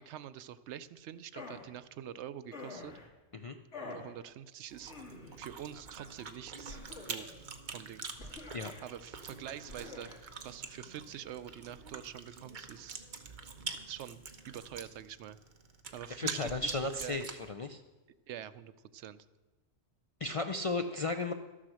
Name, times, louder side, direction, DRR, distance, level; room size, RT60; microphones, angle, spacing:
voice 1, 0.0-2.9 3.8-4.9 5.4-7.3 7.7-8.1 8.8-13.0 13.9-15.4 15.9-17.2 18.3-19.3, right 10 dB, 80° right, 14 dB, 0.9 m, -46 dB
sound 1, 1.3-1.7 2.5-3.1 3.7-4.1 4.8-5.5 6.7-7.4 8.2-8.9 9.7-10.2, left 3 dB, 90° left, 2.0 m, -47 dB
Chewing mastication, 4.7-17.5, right 5 dB, 45° right, 0.9 m, -45 dB
voice 2, 16.1-17.8 20.2-21.3, left 3 dB, 50° left, 6 dB, 0.4 m, -35 dB
13.0 x 7.5 x 6.3 m, 1.2 s
omnidirectional pair, 1.2 m